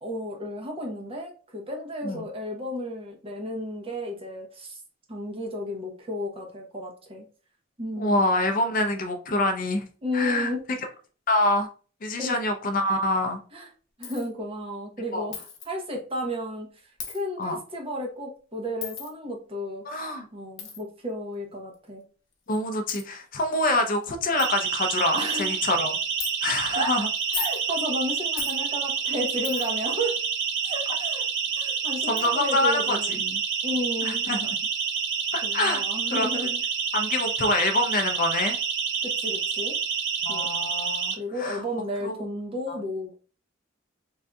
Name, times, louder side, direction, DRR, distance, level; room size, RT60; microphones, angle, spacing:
voice 1, 0.0-4.8 5.1-7.3 7.8-8.2 10.0-10.6 12.2-12.4 13.5-13.7 14.0-16.7 17.1-20.0 20.3-22.0 25.1-25.5 26.7-26.9 27.3-30.1 30.6-31.2 31.6-33.2 33.6-34.3 35.4-36.6 39.0-39.8 40.3-40.5 41.1-43.1, equal, 30° right, 1 dB, 0.8 m, -33 dB
voice 2, 8.0-9.8 10.1-10.5 11.3-11.7 12.0-13.4 15.1-15.3 17.4-17.6 19.9-20.2 22.5-26.0 26.4-27.1 32.1-33.4 34.0-34.5 35.3-35.8 36.1-36.3 36.9-38.6 40.2-41.1 41.4-41.6 42.0-42.1 42.7-42.8, left 1 dB, 45° left, 5 dB, 0.5 m, -26 dB
Coin (dropping), 14.0-14.3 15.3-15.7 17.0-17.2 18.8-19.1 20.6-20.8 21.7-21.8 22.5-22.6 22.9-23.0 23.7-23.8 24.0-24.1 24.4-24.5 25.0-25.3 26.2-26.3 27.2-27.6 28.4-28.6 29.4-29.8 31.4-31.5 32.2-32.3, left 8 dB, 80° left, 0.8 m, -35 dB
Siren, 24.4-41.1, right 6 dB, 65° right, 0.6 m, -28 dB
3.7 x 2.6 x 2.2 m, 0.38 s
head